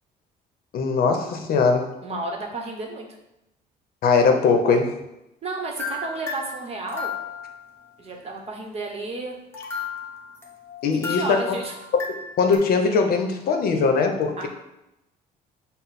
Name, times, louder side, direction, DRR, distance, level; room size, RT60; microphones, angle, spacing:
voice 1, 0.7-1.9 4.0-4.9 10.8-11.4 12.4-14.5, left 4 dB, 60° left, 4 dB, 0.7 m, -20 dB
voice 2, 2.0-3.1 5.4-7.1 8.0-9.4 10.9-11.7 14.4-14.5, right 2 dB, 35° right, 1 dB, 0.9 m, -32 dB
sound 1, 5.8-7.7 9.5-12.6, left 5 dB, 15° left, 0.9 m, -34 dB
5.8 x 2.0 x 4.1 m, 0.91 s
cardioid pair, 110°, 17 cm